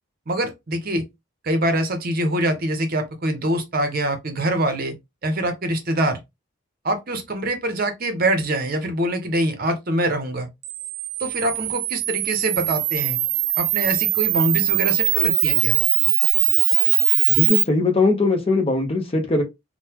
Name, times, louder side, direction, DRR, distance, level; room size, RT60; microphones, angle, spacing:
voice 1, 0.3-1.0 1.4-4.9 5.2-6.2 6.8-10.5 11.2-13.2 13.6-15.8, right 1 dB, 45° right, 0.7 m, -24 dB
Camera, 10.6-17.6, right 16 dB, 85° right, 0.3 m, -21 dB
voice 2, 17.3-19.4, left 3 dB, 25° left, 0.7 m, -20 dB
3.7 x 2.1 x 2.8 m
head